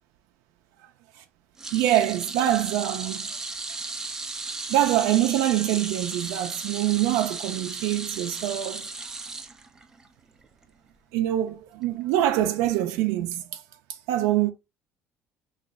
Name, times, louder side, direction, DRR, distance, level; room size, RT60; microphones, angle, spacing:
sound 1, 1.6-10.1 10.4-10.6 11.8-11.9, right 3 dB, 10° right, 0.3 m, -35 dB
voice 1, 1.7-3.3 4.7-8.8 11.1-13.6 13.9-14.5, right 13 dB, 85° right, 0.4 m, -24 dB
3.1 x 2.3 x 3.9 m
cardioid pair, 175°, 5 cm